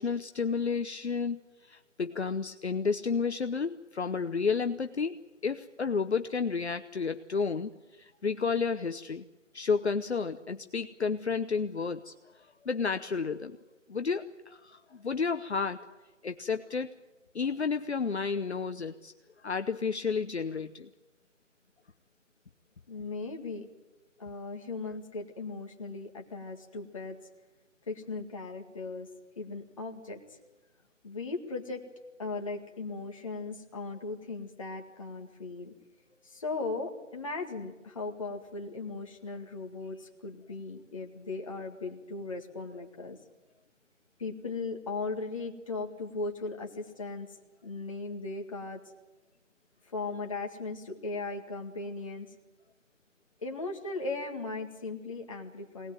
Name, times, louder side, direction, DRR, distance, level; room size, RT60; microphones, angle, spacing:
voice 1, 0.0-9.2 9.5-12.1 12.6-13.6 13.9-15.9 16.2-16.9 17.3-19.1 19.4-20.9, left 5 dB, 55° left, 8 dB, 1.0 m, -31 dB
voice 2, 22.9-23.7 24.2-27.2 27.9-29.1 29.4-30.2 31.0-31.8 32.2-35.7 36.2-43.2 44.2-47.3 47.6-48.8 49.9-52.3 53.4-55.9, left 3 dB, 25° left, 1 dB, 2.0 m, -37 dB
23.5 x 19.0 x 9.2 m, 1.1 s
figure-of-eight pair, 170°, 39 cm